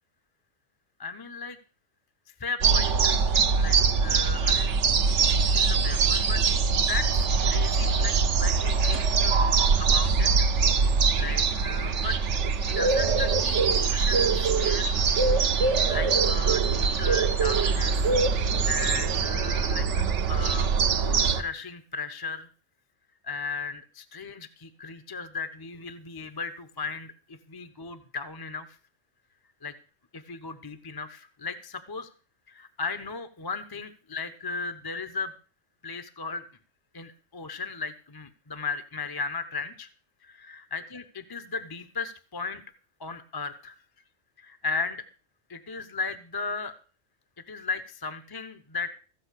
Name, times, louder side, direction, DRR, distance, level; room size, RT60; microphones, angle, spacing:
voice 1, 1.0-1.6 2.4-3.2 3.5-4.7 5.5-6.4 6.8-9.4 9.8-12.2 12.8-15.2 15.6-18.2 18.7-22.5 23.2-28.8 29.6-29.7 30.1-32.1 32.5-35.3 35.8-36.4 36.9-39.9 40.2-42.6 43.0-43.8 44.4-45.0 45.5-46.7 47.5-48.9, left 4 dB, 20° left, 10 dB, 0.8 m, -36 dB
sound 1, 2.6-21.4, right 5 dB, 70° right, 1.3 m, -23 dB
15.5 x 5.5 x 8.3 m, 0.39 s
omnidirectional pair, 1.3 m